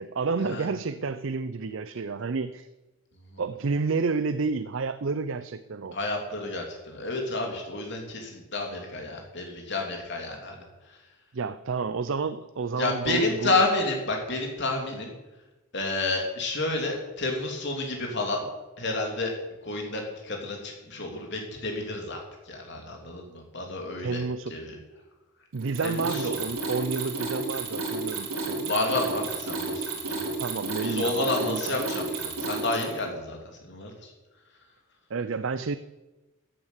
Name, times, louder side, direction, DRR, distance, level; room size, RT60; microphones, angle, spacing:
voice 1, 0.0-2.7 3.4-6.0 11.3-13.6 24.0-24.7 25.5-28.7 30.4-31.8 35.1-35.8, right 4 dB, 60° right, 13 dB, 0.5 m, -30 dB
voice 2, 5.9-10.6 12.8-15.1 15.7-18.5 18.8-19.3 19.6-22.2 22.5-24.2 24.5-24.8 25.8-26.4 28.6-30.3 30.8-34.1, left 2 dB, 55° left, 1 dB, 3.2 m, -30 dB
Mechanisms, 25.6-33.0, right 3 dB, 90° right, 4.0 m, -32 dB
14.0 x 8.8 x 8.2 m, 1.1 s
head